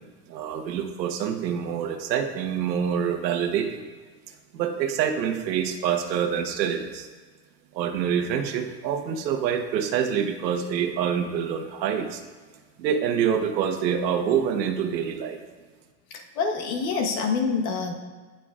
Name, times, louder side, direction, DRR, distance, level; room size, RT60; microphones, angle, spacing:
voice 1, 0.3-3.8 4.5-7.1 7.7-12.2 12.8-15.4, right 8 dB, 80° right, 6 dB, 1.3 m, -26 dB
voice 2, 16.1-17.9, left 5 dB, 55° left, 2 dB, 1.4 m, -26 dB
16.5 x 5.9 x 2.5 m, 1.4 s
supercardioid pair, 170°, 50 cm